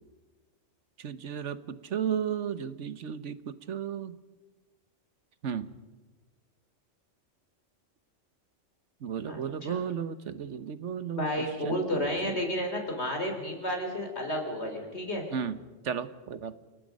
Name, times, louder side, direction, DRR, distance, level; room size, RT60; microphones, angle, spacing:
voice 1, 1.0-4.1 5.4-5.7 9.0-12.4 15.3-15.6 15.8-16.6, right 8 dB, 80° right, 14 dB, 1.3 m, -34 dB
voice 2, 9.3-9.8 11.1-15.2, equal, 65° left, 3 dB, 4.6 m, -32 dB
29.0 x 19.0 x 5.3 m, 1.2 s
omnidirectional pair, 1.2 m